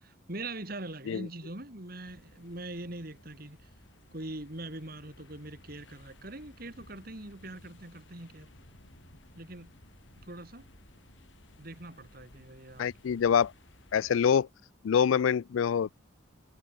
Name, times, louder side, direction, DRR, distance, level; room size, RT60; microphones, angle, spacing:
voice 1, 0.0-3.6 4.1-8.5 9.4-9.7 10.3-10.7 11.6-12.8, right 2 dB, 50° right, 3.1 m, -42 dB
sound 1, 2.0-14.3, left 1 dB, 70° left, 5.8 m, -57 dB
voice 2, 12.8-13.5 13.9-14.5 14.8-16.0, left 7 dB, 90° left, 0.4 m, -25 dB
head